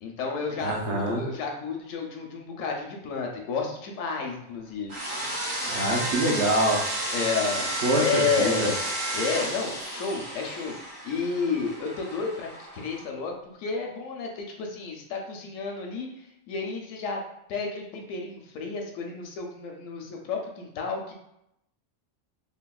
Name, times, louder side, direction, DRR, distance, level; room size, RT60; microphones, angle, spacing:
voice 1, 0.0-5.0 5.5-5.7 7.1-7.7 8.0-8.7 9.1-10.8 11.0-17.2 17.5-21.1, left 5 dB, 80° left, 1 dB, 1.0 m, -31 dB
voice 2, 0.6-1.2 5.1-5.2 5.6-6.8 7.8-8.7, right 1 dB, 65° right, -2 dB, 0.8 m, -25 dB
sound 1, 4.9-13.0, right 1 dB, 85° right, 1.5 m, -32 dB
3.4 x 2.1 x 2.3 m, 0.80 s
omnidirectional pair, 1.3 m